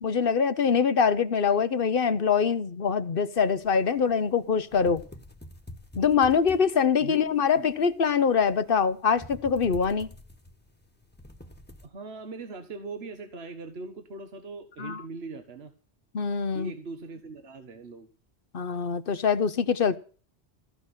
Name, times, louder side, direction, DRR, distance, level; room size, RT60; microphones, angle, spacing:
voice 1, 0.0-5.0 5.9-10.1 14.8-15.0 16.1-16.7 18.5-20.0, left 6 dB, 60° left, 1.0 m, -24 dB
sound 1, 3.4-11.9, left 1 dB, 10° left, 1.4 m, -48 dB
voice 2, 11.8-15.7 16.5-18.1, right 3 dB, 65° right, 1.5 m, -40 dB
15.0 x 6.0 x 9.7 m
omnidirectional pair, 1.1 m